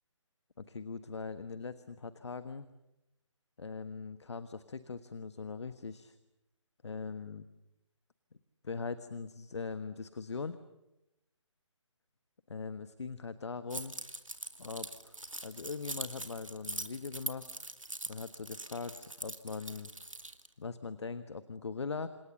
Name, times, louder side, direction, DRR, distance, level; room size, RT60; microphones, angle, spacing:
voice 1, 0.6-2.7 3.6-6.1 6.8-7.5 8.6-10.6 12.5-13.9 14.6-15.1 15.4-17.5 18.1-19.9 20.6-22.1, left 4 dB, 60° left, 12 dB, 1.3 m, -41 dB
Keys jangling, 13.7-20.5, right 2 dB, 90° right, 2.4 m, -42 dB
29.5 x 27.0 x 7.1 m, 0.92 s
figure-of-eight pair, 145°, 16 cm